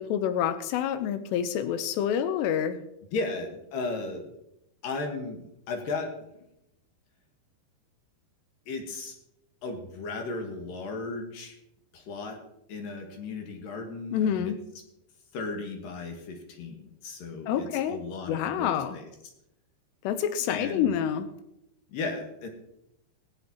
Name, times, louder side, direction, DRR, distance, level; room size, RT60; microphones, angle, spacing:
voice 1, 0.0-2.8 14.1-14.6 17.5-18.0 18.3-19.0 20.0-21.3, left 9 dB, 80° left, 10 dB, 2.7 m, -27 dB
voice 2, 3.1-4.3 4.8-6.1 8.7-9.2 9.6-11.6 11.9-12.4 12.7-14.5 15.3-19.1 20.5-21.0 21.9-22.5, left 3 dB, 60° left, 3 dB, 2.5 m, -35 dB
22.0 x 8.0 x 2.9 m, 0.83 s
omnidirectional pair, 5.4 m